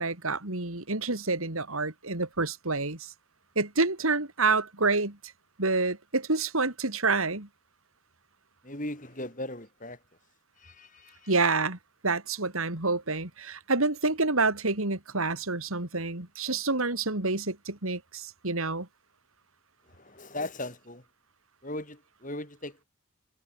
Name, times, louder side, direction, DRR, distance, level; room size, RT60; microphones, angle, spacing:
voice 1, 0.0-3.1 3.5-5.2 5.6-7.5 11.3-11.8 12.0-18.9, right 3 dB, 75° right, 3.3 m, -28 dB
voice 2, 8.6-10.0 10.6-11.3 19.9-21.0 21.6-22.9, left 1 dB, 35° left, 7.2 m, -38 dB
head